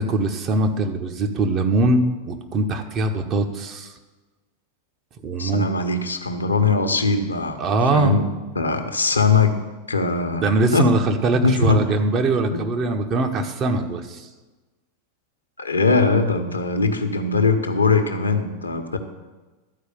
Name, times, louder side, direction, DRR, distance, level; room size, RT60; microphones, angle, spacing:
voice 1, 0.0-3.9 5.2-5.7 7.6-8.2 10.4-14.3, right 2 dB, 30° right, 5 dB, 1.0 m, -22 dB
voice 2, 5.4-7.6 7.9-8.3 8.5-9.6 9.9-10.9 11.4-11.9 12.5-12.6 15.6-19.0, left 4 dB, 80° left, 7 dB, 0.9 m, -21 dB
12.5 x 4.8 x 6.9 m, 1.2 s
figure-of-eight pair, 90°, 0 cm